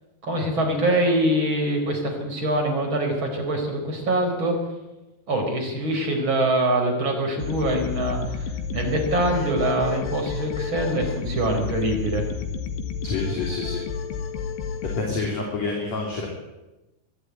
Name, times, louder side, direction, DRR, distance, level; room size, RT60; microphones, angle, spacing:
voice 1, 0.2-4.6 5.3-12.2, right 1 dB, 25° right, 2 dB, 4.9 m, -24 dB
sound 1, 7.4-15.1, left 6 dB, 70° left, 3.7 m, -31 dB
voice 2, 13.0-13.8 14.8-16.3, left 3 dB, 40° left, -1 dB, 4.0 m, -28 dB
23.5 x 12.5 x 9.6 m, 1.1 s
omnidirectional pair, 5.3 m